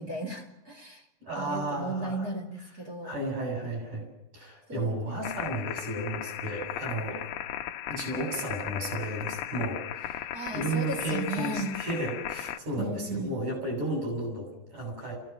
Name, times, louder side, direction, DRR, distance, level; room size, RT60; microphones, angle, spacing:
voice 1, 0.0-1.1 1.4-3.1 4.7-5.0 10.3-11.8 12.8-13.3, right 2 dB, 25° right, 1 dB, 2.5 m, -35 dB
voice 2, 1.2-2.3 3.0-4.1 4.3-7.2 7.9-15.2, right 1 dB, 45° right, 1 dB, 9.2 m, -33 dB
sound 1, 5.2-12.6, left 12 dB, 70° left, 2.3 m, -36 dB
29.5 x 16.5 x 6.1 m, 0.92 s
omnidirectional pair, 4.7 m